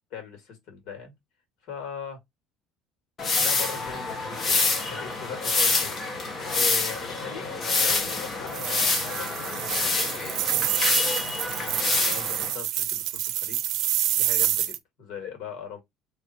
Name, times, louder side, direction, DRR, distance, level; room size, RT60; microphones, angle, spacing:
voice 1, 0.1-1.1 1.6-2.2 3.4-13.6 14.1-15.8, left 7 dB, 60° left, 2.1 m, -41 dB
sound 1, 3.2-12.5, left 3 dB, 30° left, 1.1 m, -27 dB
sound 2, 8.5-14.8, right 13 dB, 60° right, 0.6 m, -28 dB
3.3 x 2.6 x 4.3 m
cardioid pair, 140°, 0 cm